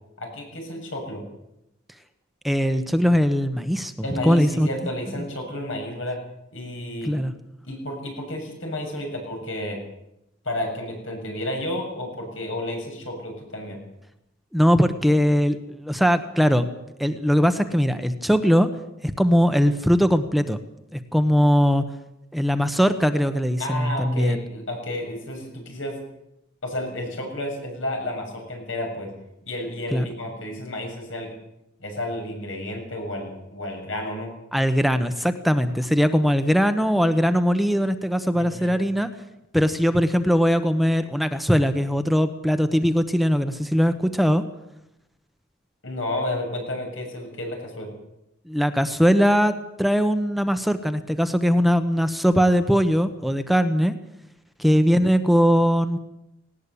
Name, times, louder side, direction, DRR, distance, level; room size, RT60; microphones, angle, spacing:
voice 1, 0.2-1.2 4.0-6.2 6.5-7.2 7.6-9.8 10.4-13.8 23.6-26.0 26.6-29.1 29.4-31.3 31.8-34.3 38.4-38.7 45.8-47.9, left 1 dB, 85° left, 2 dB, 7.4 m, -31 dB
voice 2, 2.4-3.9 4.2-4.7 5.2-5.3 7.0-7.3 14.5-16.7 17.0-18.7 19.0-20.6 20.9-21.8 22.3-24.4 29.9-30.1 34.5-39.1 39.5-44.4 48.5-53.9 54.6-56.0, equal, ahead, 9 dB, 1.0 m, -20 dB
18.5 x 18.0 x 8.5 m, 0.85 s
head